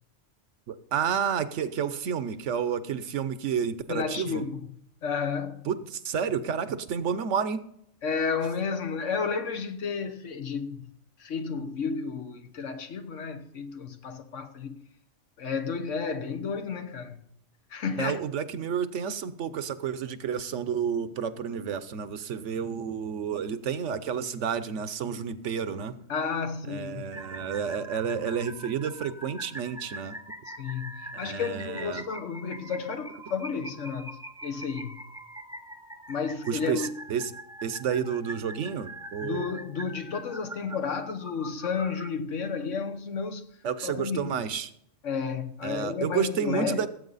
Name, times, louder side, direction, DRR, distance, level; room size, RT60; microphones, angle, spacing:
voice 1, 0.7-4.4 5.7-7.6 18.0-25.9 26.7-30.2 31.1-32.1 36.5-37.3 37.6-39.5 43.6-44.7 45.6-46.9, right 7 dB, 75° right, 1.1 m, -30 dB
voice 2, 3.9-4.7 5.0-5.7 8.0-10.9 11.2-14.7 15.4-17.2 17.7-18.2 26.1-27.0 30.5-35.0 36.1-36.9 39.2-43.4 43.8-44.4 45.0-46.9, left 5 dB, 85° left, 1.4 m, -32 dB
sound 1, 27.1-42.1, right 1 dB, 5° right, 0.4 m, -43 dB
17.5 x 8.2 x 4.0 m
omnidirectional pair, 1.2 m